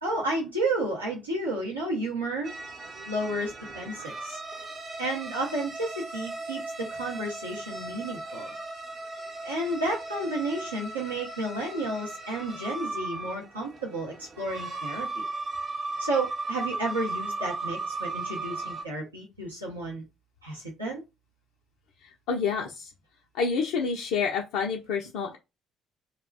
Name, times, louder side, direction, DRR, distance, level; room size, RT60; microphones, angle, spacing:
voice 1, 0.0-2.5 3.1-4.4 5.0-8.6 9.4-15.2 16.0-20.0 20.4-21.0, right 2 dB, 85° right, 0.6 m, -32 dB
sound 1, 2.4-18.8, right 3 dB, 45° right, 0.8 m, -37 dB
voice 2, 22.0-22.9 23.3-25.4, left 5 dB, 65° left, 0.4 m, -28 dB
2.3 x 2.1 x 3.3 m
figure-of-eight pair, 45°, 0 cm